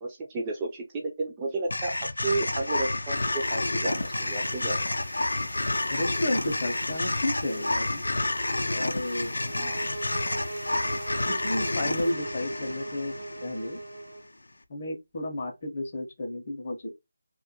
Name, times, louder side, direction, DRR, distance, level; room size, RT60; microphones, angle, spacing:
voice 1, 0.0-4.8 9.6-9.8, right 2 dB, 15° right, 0.3 m, -32 dB
sound 1, 1.7-14.0, left 2 dB, 85° left, 0.4 m, -30 dB
sound 2, 3.1-12.1, right 2 dB, 55° right, 0.8 m, -49 dB
voice 2, 5.9-8.0 8.7-9.4 11.3-13.2 13.4-13.8 14.7-16.9, left 1 dB, 35° left, 0.5 m, -32 dB
sound 3, 9.3-14.2, right 2 dB, 85° right, 0.7 m, -39 dB
2.2 x 2.1 x 2.8 m
figure-of-eight pair, 170°, 0 cm